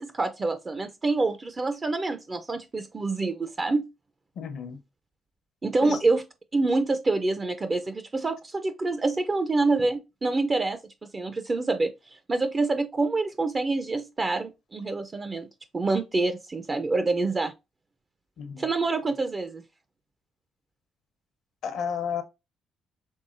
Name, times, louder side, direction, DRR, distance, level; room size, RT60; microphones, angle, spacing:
voice 1, 0.0-3.8 5.6-6.2 6.5-10.8 11.1-11.9 12.3-15.5 15.7-17.5 18.6-19.6, right 3 dB, 30° right, 0.5 m, -26 dB
voice 2, 4.4-4.8 5.8-6.0 18.4-18.6 21.6-22.2, left 7 dB, 75° left, 0.8 m, -32 dB
5.4 x 3.4 x 2.5 m
cardioid pair, 90°, 0 cm